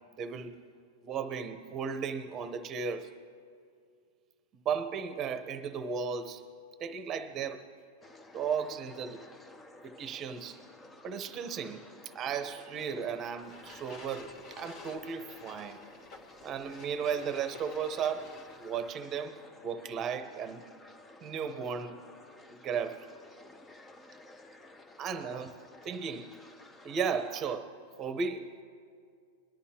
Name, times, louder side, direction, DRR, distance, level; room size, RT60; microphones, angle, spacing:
voice 1, 0.2-0.6 1.0-3.1 4.6-6.4 6.8-7.6 8.3-9.2 9.8-10.6 11.0-11.9 12.1-15.8 16.4-18.3 18.6-19.4 19.6-20.6 21.2-22.0 22.5-23.1 25.0-25.5 25.8-26.3 26.8-27.7 28.0-28.6, right 6 dB, 25° right, 0.9 m, -35 dB
sound 1, 8.0-27.6, left 2 dB, 15° left, 0.7 m, -54 dB
sound 2, 13.4-18.9, left 3 dB, 40° left, 1.4 m, -51 dB
22.0 x 11.0 x 2.9 m
supercardioid pair, 150°, 0 cm